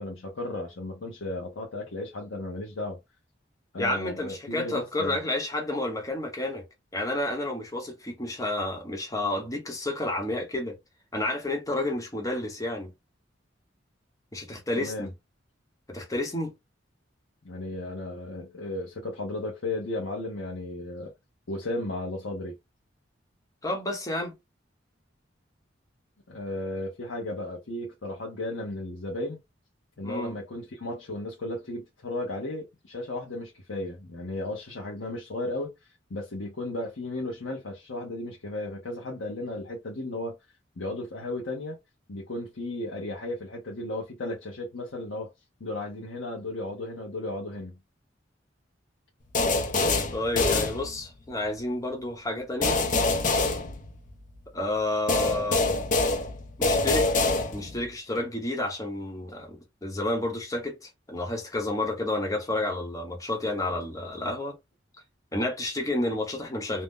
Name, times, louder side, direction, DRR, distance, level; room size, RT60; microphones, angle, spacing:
voice 1, 0.0-3.0 3.7-5.2 14.8-15.1 17.4-21.1 21.5-22.5 26.3-29.4 30.0-40.3 40.8-41.8 42.1-45.3 45.6-47.8, left 2 dB, 80° left, 0.8 m, -34 dB
voice 2, 3.8-6.6 6.9-10.8 11.1-12.9 14.3-15.1 15.9-16.5 23.6-24.3 30.0-30.3 50.1-52.8 54.5-55.7 56.6-57.2 57.5-64.6 65.3-66.8, left 1 dB, 20° left, 0.8 m, -30 dB
sound 1, 49.3-51.3 52.6-54.4 55.1-57.9, left 3 dB, 45° left, 0.6 m, -25 dB
2.6 x 2.1 x 3.5 m
head